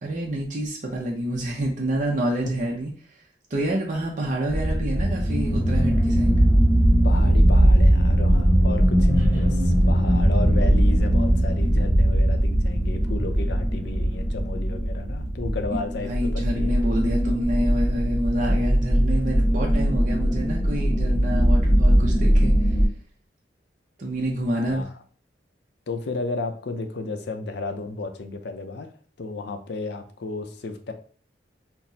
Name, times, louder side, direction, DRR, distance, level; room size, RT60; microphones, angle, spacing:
voice 1, 0.0-2.9 3.5-6.4 15.7-15.8 16.1-22.8 24.0-24.9, right 1 dB, 45° right, -2 dB, 0.6 m, -28 dB
sound 1, 4.5-22.9, equal, 15° right, 1.4 m, -20 dB
voice 2, 7.0-16.8 24.6-24.9 25.9-28.9 29.2-30.9, left 3 dB, 70° left, 7 dB, 0.5 m, -33 dB
5.8 x 2.0 x 2.7 m, 0.43 s
head